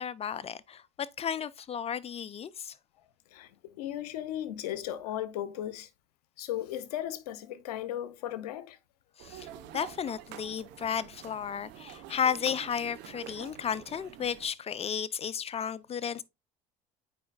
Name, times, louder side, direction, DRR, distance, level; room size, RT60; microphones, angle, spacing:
voice 1, 0.0-2.7 9.2-9.5 9.7-16.2, left 8 dB, 30° left, 0.6 m, -33 dB
voice 2, 3.8-5.9 6.4-8.8, left 12 dB, 85° left, 0.7 m, -36 dB
sound 1, 9.2-14.5, right 10 dB, 70° right, 1.2 m, -47 dB
8.4 x 4.8 x 2.5 m
hypercardioid pair, 75°, 19 cm